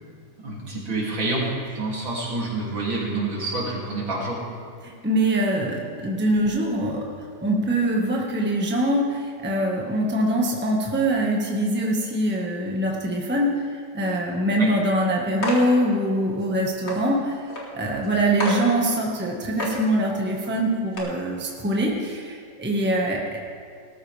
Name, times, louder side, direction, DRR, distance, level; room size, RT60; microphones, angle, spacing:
voice 1, 0.4-1.5 1.8-4.4 14.6-14.7, right 2 dB, 70° right, -4 dB, 3.7 m, -27 dB
voice 2, 4.8-7.0 7.4-13.5 13.9-17.3 17.7-23.4, right 1 dB, 5° right, -2 dB, 1.4 m, -23 dB
sound 1, 15.4-15.7 16.4-16.5 16.9-17.0 17.5-17.6 18.0-18.1 18.4-18.6 19.1-19.2 19.6-19.8 20.4-20.5 20.9-21.0, left 1 dB, 30° left, 2.6 m, -28 dB
19.0 x 13.5 x 3.5 m, 2.2 s
omnidirectional pair, 2.2 m